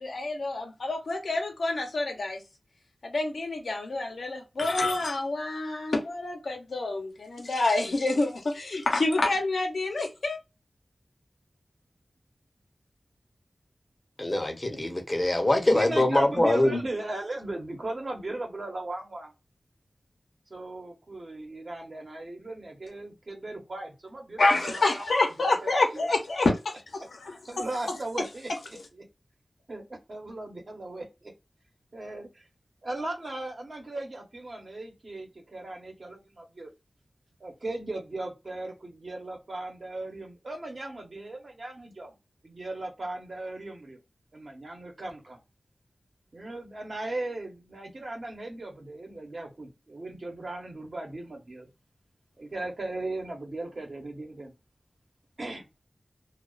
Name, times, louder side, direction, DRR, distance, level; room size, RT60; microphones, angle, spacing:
voice 1, 0.0-2.4 3.0-10.4 24.4-26.7 27.1-27.6, left 2 dB, 85° left, 0.7 m, -27 dB
voice 2, 14.2-16.8, left 1 dB, 30° left, 0.7 m, -23 dB
voice 3, 15.7-19.3 20.5-25.5 25.9-26.1 27.5-29.0 29.7-31.3 31.9-32.5 32.8-36.7 37.4-42.2 42.4-44.0 44.3-45.4 46.3-51.7 52.4-54.5 55.4-55.6, right 2 dB, 55° right, 1.0 m, -37 dB
2.3 x 2.3 x 2.3 m
wide cardioid pair, 85°, 0 cm